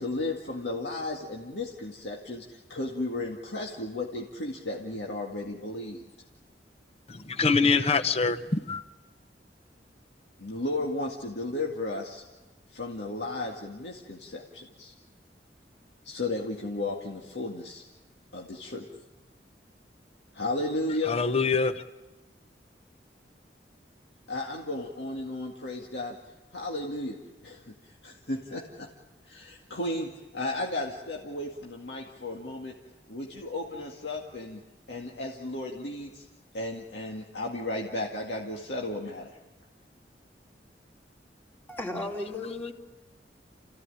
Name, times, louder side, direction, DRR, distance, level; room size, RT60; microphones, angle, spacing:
voice 1, 0.0-6.0 10.4-12.2 12.7-14.9 16.0-17.8 18.3-18.9 20.3-21.2 24.3-26.2 26.5-27.7 28.0-28.9 29.2-32.7 33.1-34.6 34.9-36.3 36.5-39.3, left 2 dB, 80° left, 2.1 m, -34 dB
voice 2, 7.1-8.8 20.9-21.8, left 4 dB, 35° left, 0.8 m, -25 dB
voice 3, 41.7-42.7, left 2 dB, 10° left, 2.9 m, -34 dB
29.0 x 15.5 x 9.9 m
head